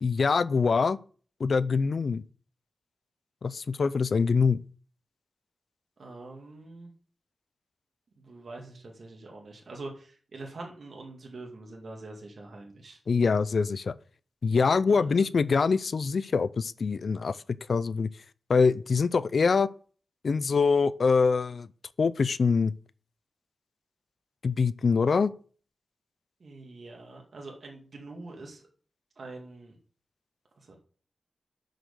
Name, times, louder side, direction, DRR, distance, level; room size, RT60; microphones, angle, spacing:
voice 1, 0.0-1.0 1.4-2.2 3.4-4.6 13.1-14.0 14.4-17.4 17.7-18.1 18.5-19.7 20.2-21.7 22.0-22.7 24.4-25.3, left 5 dB, 70° left, 0.4 m, -24 dB
voice 2, 6.0-6.9 8.2-13.0 14.9-15.3 26.4-28.6 29.2-29.8 30.6-30.8, right 2 dB, 70° right, 2.2 m, -44 dB
6.4 x 6.3 x 6.8 m
cardioid pair, 60°, 0 cm